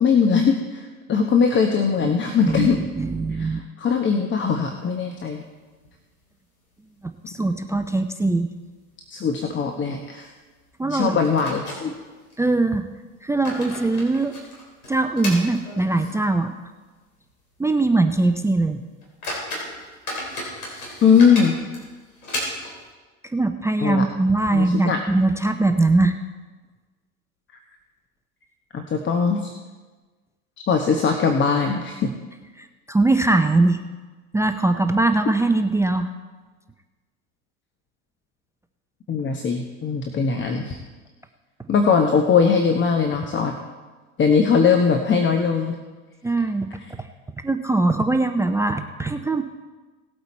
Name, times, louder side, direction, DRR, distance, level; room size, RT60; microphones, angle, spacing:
voice 1, 0.0-2.8 3.3-5.4 9.1-10.3 10.9-11.9 21.0-21.6 23.8-24.0 24.5-25.0 28.7-29.5 30.7-32.1 39.1-40.8 41.7-43.5 44.2-45.8, left 6 dB, 25° left, 4 dB, 1.1 m, -20 dB
voice 2, 2.4-3.6 7.3-8.5 10.8-11.2 12.4-12.9 13.2-14.4 14.9-16.5 17.6-18.8 23.3-26.2 32.6-33.8 34.3-36.1 46.2-46.7 47.4-49.4, right 2 dB, 5° right, 8 dB, 0.5 m, -21 dB
sound 1, 4.5-5.5 5.8-5.9 6.3-6.4 7.0-7.5 7.7-7.9 8.5-8.7 9.0-9.2 10.5-10.6 11.2-12.4 13.1-16.3 16.6-16.7 17.3-17.4 17.8-18.0 18.5-18.6 19.0-22.9, left 1 dB, 85° left, 4.0 m, -34 dB
18.5 x 8.1 x 4.3 m, 1.3 s
hypercardioid pair, 85°, 43 cm